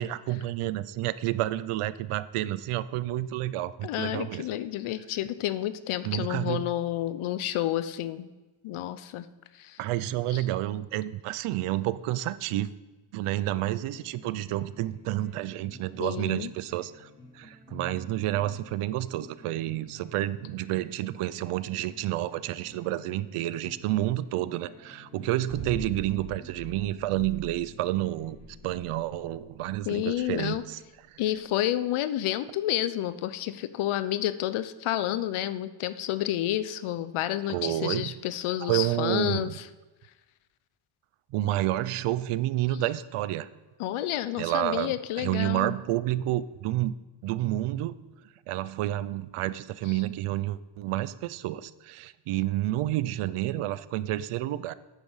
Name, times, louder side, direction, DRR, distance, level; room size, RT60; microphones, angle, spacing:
voice 1, 0.0-4.5 6.0-6.6 9.8-12.7 13.1-17.1 17.3-28.4 28.6-30.8 31.1-31.2 37.5-38.1 38.6-39.6 41.3-43.5 44.4-46.9 47.2-47.9 48.5-54.7, right 14 dB, 85° right, 16 dB, 0.6 m, -30 dB
voice 2, 3.8-8.3 8.6-9.3 9.5-9.8 10.3-10.4 16.0-16.5 29.9-30.6 31.2-39.7 43.8-45.7, left 13 dB, 75° left, 14 dB, 0.7 m, -30 dB
sound 1, 13.8-29.7, left 2 dB, 25° left, 3.8 m, -51 dB
sound 2, 25.5-31.7, right 1 dB, 45° right, 2.1 m, -44 dB
9.2 x 8.0 x 5.6 m, 1.2 s
cardioid pair, 155°, 50 cm